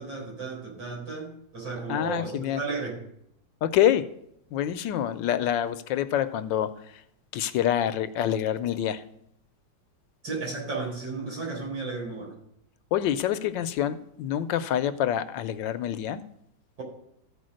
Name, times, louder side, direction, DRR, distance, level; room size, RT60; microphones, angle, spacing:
voice 1, 0.0-3.0 10.2-12.4, right 3 dB, 75° right, -5 dB, 5.1 m, -34 dB
voice 2, 1.9-2.6 3.6-4.1 4.5-6.7 7.3-9.0 12.9-16.2, left 10 dB, 80° left, 12 dB, 1.3 m, -26 dB
14.5 x 4.9 x 6.3 m, 0.74 s
omnidirectional pair, 2.0 m